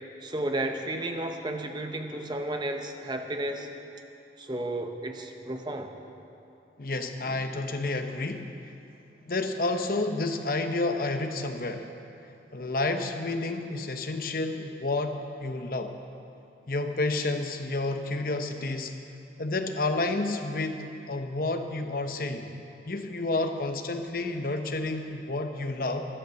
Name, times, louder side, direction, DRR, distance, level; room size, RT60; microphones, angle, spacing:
voice 1, 0.2-3.7 4.4-5.9, right 1 dB, 25° right, 5 dB, 0.9 m, -33 dB
voice 2, 6.8-8.5 9.2-11.9 12.5-15.9 16.7-18.9 19.4-22.5 22.8-26.1, left 2 dB, 55° left, 6 dB, 0.9 m, -30 dB
12.5 x 12.5 x 7.0 m, 2.7 s
head